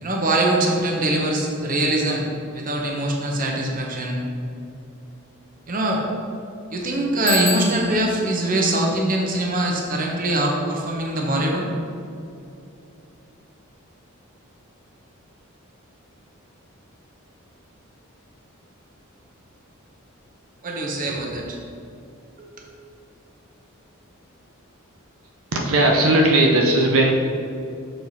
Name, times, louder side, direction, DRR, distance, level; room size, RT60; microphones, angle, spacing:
voice 1, 0.0-2.2 2.5-4.3 5.7-6.0 6.7-11.7 20.6-21.6 22.4-22.5, right 1 dB, 40° right, 0 dB, 0.9 m, -23 dB
Bicycle bell, 7.3-8.2, left 4 dB, 45° left, 1.1 m, -28 dB
voice 2, 25.5-27.1, right 1 dB, 75° right, 0 dB, 0.7 m, -17 dB
6.8 x 4.5 x 4.1 m, 2.6 s
head